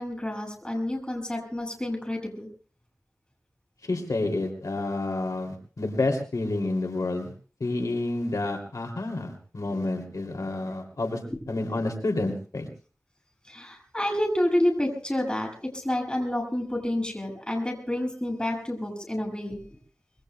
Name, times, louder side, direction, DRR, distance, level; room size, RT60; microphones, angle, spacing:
voice 1, 0.0-2.5 13.5-19.8, left 1 dB, 15° left, 1 dB, 7.2 m, -29 dB
voice 2, 3.8-7.3 7.6-11.2 11.5-12.7, left 2 dB, 80° left, 3 dB, 2.8 m, -29 dB
25.5 x 22.5 x 2.3 m, 0.38 s
wide cardioid pair, 60°, 6 cm